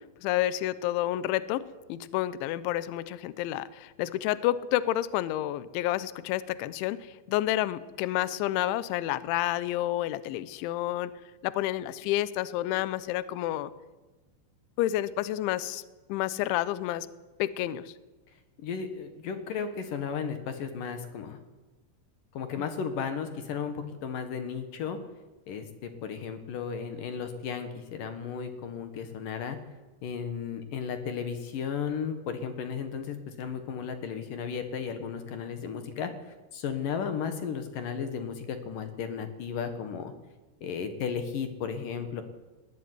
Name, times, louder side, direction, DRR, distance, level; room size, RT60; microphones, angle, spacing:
voice 1, 0.2-1.6 1.9-11.1 11.4-13.7 14.8-15.8 16.1-17.1 17.4-17.9 22.6-22.7, left 14 dB, 80° left, 16 dB, 3.1 m, -29 dB
voice 2, 18.6-21.4 22.3-25.0 25.5-29.6 30.0-40.1 40.6-42.2, left 6 dB, 60° left, 8 dB, 2.4 m, -34 dB
20.0 x 19.0 x 9.6 m, 1.2 s
omnidirectional pair, 5.7 m